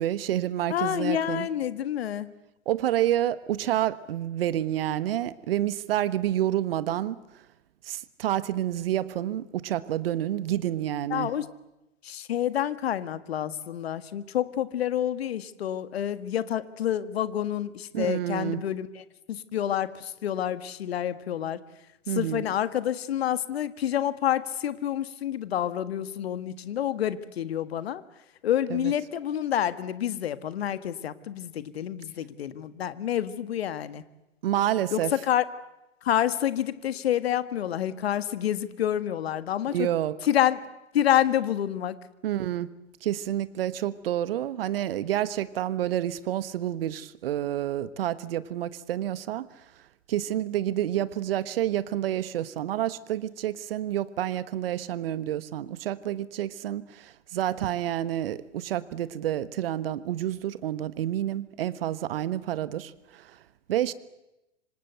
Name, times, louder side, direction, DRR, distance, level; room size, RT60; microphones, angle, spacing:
voice 1, 0.0-1.5 2.7-7.2 7.9-11.3 17.9-18.6 22.1-22.4 28.7-28.9 34.4-35.1 39.7-40.2 42.2-42.7 43.0-49.5 50.1-63.3 63.7-63.9, right 12 dB, 50° right, 16 dB, 1.4 m, -29 dB
voice 2, 0.7-2.3 11.1-11.5 12.0-21.6 22.1-28.0 28.4-34.0 34.9-35.4 36.0-39.9 40.2-40.6 40.9-42.0, left 11 dB, 55° left, 13 dB, 1.7 m, -28 dB
26.0 x 26.0 x 8.1 m, 0.95 s
figure-of-eight pair, 110°, 37 cm